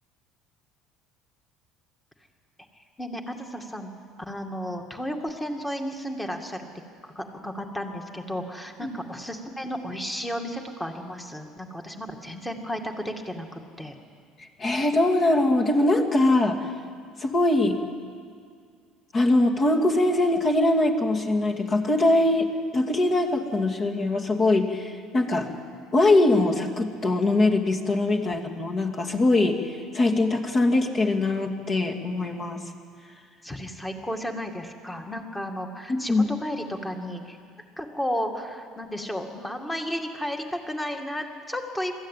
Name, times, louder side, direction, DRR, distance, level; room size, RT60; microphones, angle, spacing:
voice 1, 2.8-3.9 4.2-6.7 7.0-14.0 33.4-37.4 37.8-42.0, equal, 10° left, 3 dB, 2.2 m, -33 dB
voice 2, 14.6-16.6 17.2-17.8 19.1-25.5 25.9-29.6 29.9-32.6 35.9-36.3, left 2 dB, 35° left, 2 dB, 2.5 m, -22 dB
22.5 x 14.5 x 9.2 m, 2.2 s
cardioid pair, 120°, 0 cm